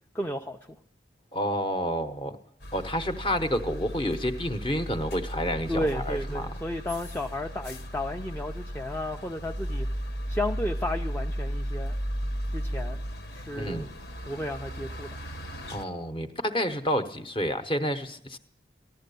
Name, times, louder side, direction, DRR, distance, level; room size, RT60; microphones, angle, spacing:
voice 1, 0.1-0.8 5.7-12.0 12.5-13.0 13.3-13.9 14.2-15.2, left 1 dB, 10° left, 2 dB, 0.5 m, -33 dB
voice 2, 1.3-2.4 2.7-6.5 13.6-13.9 15.7-18.4, equal, 30° left, 8 dB, 0.9 m, -29 dB
sound 1, 2.6-15.8, equal, 65° left, 1.2 m, -35 dB
15.0 x 11.5 x 6.8 m, 0.67 s
head